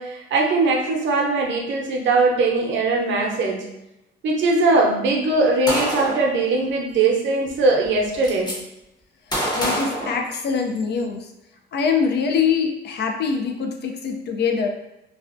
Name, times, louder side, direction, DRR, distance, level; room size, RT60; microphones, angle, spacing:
voice 1, 0.0-3.7 4.2-8.5, right 3 dB, 70° right, 0 dB, 0.6 m, -20 dB
Gunshot gunfire, 5.7-6.3 7.5-7.6 7.8-8.5 9.3-10.8, equal, 20° left, 0.8 m, -26 dB
voice 2, 9.5-11.3 11.7-14.7, left 6 dB, 55° left, 3 dB, 0.4 m, -23 dB
2.3 x 2.1 x 2.5 m, 0.89 s
cardioid pair, 90°, 20 cm